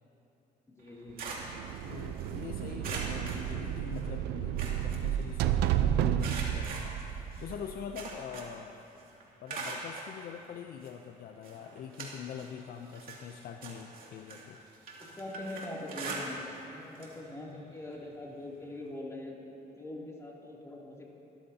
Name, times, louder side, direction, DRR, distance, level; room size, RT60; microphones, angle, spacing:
voice 1, 0.7-1.3 15.0-21.0, left 1 dB, 15° left, -3 dB, 2.8 m, -43 dB
sound 1, 0.8-2.4 2.8-4.1 4.4-5.7 6.2-8.7 9.0-10.1 10.8-10.9 11.4-12.6 12.9-16.7 17.0-17.2 17.5-17.6 18.9-19.0, right 3 dB, 60° right, 2.5 m, -42 dB
sound 2, 1.3-8.0, right 10 dB, 80° right, 0.6 m, -32 dB
voice 2, 1.9-7.0 7.4-8.8 9.4-14.6, left 8 dB, 60° left, 5 dB, 0.6 m, -44 dB
25.0 x 13.5 x 2.9 m, 3.0 s
cardioid pair, 110°, 17 cm